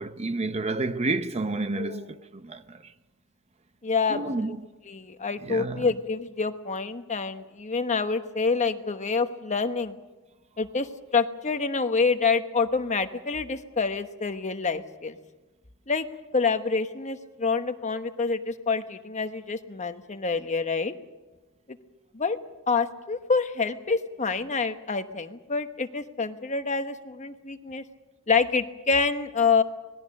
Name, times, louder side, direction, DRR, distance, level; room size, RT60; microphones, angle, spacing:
voice 1, 0.0-2.9 4.1-4.6 5.4-5.9, right 2 dB, 30° right, 0.7 m, -30 dB
voice 2, 1.8-2.1 3.8-4.6 4.9-9.9 10.6-10.9 11.1-15.2 15.9-16.1 16.3-20.9 22.1-22.4 22.7-27.8 28.3-29.6, left 4 dB, 35° left, 1.1 m, -27 dB
26.0 x 20.0 x 6.6 m
head